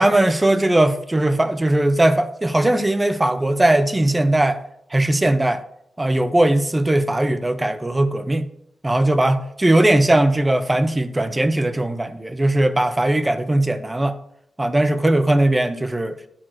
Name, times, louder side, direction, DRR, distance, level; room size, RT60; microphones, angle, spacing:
voice 1, 0.0-4.6 4.9-5.6 6.0-8.5 8.8-14.2 14.6-16.2, right 1 dB, 15° right, 0.6 m, -19 dB
9.8 x 4.7 x 4.3 m
wide cardioid pair, 100°, 0 cm